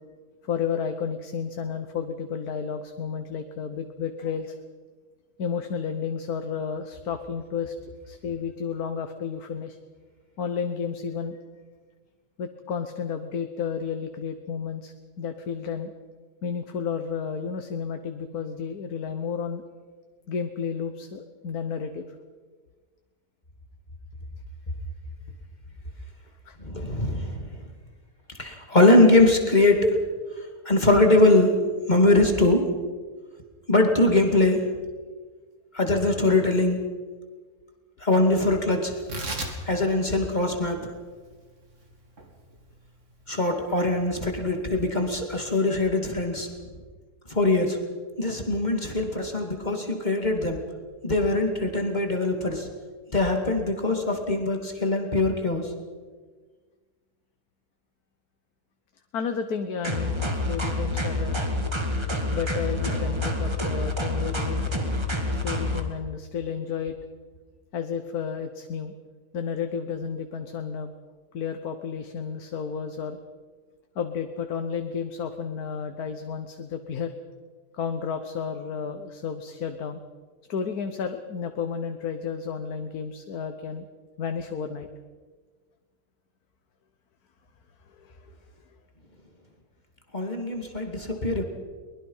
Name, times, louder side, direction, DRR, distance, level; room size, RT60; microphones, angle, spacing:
voice 1, 0.4-4.6 5.4-7.7 8.0-9.8 10.4-11.4 12.4-15.9 16.4-19.6 20.3-22.1 26.4-26.6 59.1-61.4 62.3-64.7 65.4-67.0 67.7-68.9 69.3-70.9 71.3-73.2 73.9-77.1 77.7-80.0 80.5-83.8 84.2-84.9 88.0-88.4, left 6 dB, 90° left, 7 dB, 1.6 m, -32 dB
voice 2, 26.6-27.5 28.4-30.0 30.7-31.6 31.9-32.7 33.7-34.7 35.7-36.8 38.0-39.0 39.7-40.8 43.3-46.5 47.3-47.8 48.2-50.6 51.0-52.7 53.1-55.7 90.1-91.4, left 2 dB, 30° left, 3 dB, 2.4 m, -22 dB
Tearing, 38.9-45.7, right 2 dB, 55° right, 3.0 m, -40 dB
sound 1, 59.8-65.8, left 1 dB, 20° right, 2.0 m, -27 dB
23.0 x 21.0 x 5.6 m, 1.5 s
omnidirectional pair, 1.5 m